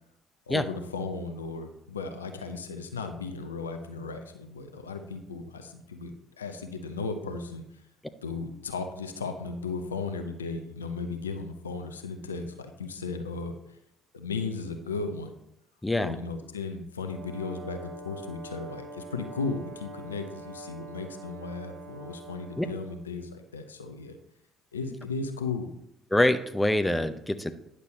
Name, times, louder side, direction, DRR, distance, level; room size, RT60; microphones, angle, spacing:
voice 1, 0.5-6.1 6.4-7.6 8.2-13.8 14.1-15.3 16.0-24.2 24.7-25.7, left 4 dB, 85° left, 7 dB, 0.6 m, -35 dB
voice 2, 15.8-16.2 22.6-22.7 26.1-27.5, left 1 dB, 10° left, 10 dB, 0.7 m, -25 dB
Brass instrument, 17.1-23.1, right 2 dB, 55° right, 0.9 m, -44 dB
9.8 x 6.7 x 3.2 m, 0.79 s
figure-of-eight pair, 50°, 0 cm